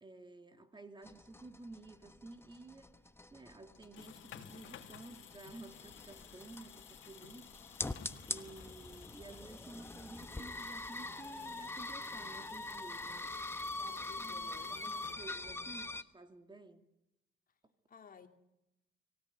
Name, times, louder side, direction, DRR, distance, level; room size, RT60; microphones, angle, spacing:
voice 1, 0.0-2.9 3.3-7.5 8.3-13.3 13.9-16.8, right 2 dB, 25° right, 2.5 m, -53 dB
sound 1, 1.0-16.0, left 2 dB, 10° left, 1.2 m, -44 dB
sound 2, 3.7-15.7, left 10 dB, 80° left, 2.5 m, -56 dB
voice 2, 13.8-14.8 17.9-18.3, left 6 dB, 45° left, 2.6 m, -55 dB
25.0 x 17.0 x 9.1 m
cardioid pair, 90°, 20 cm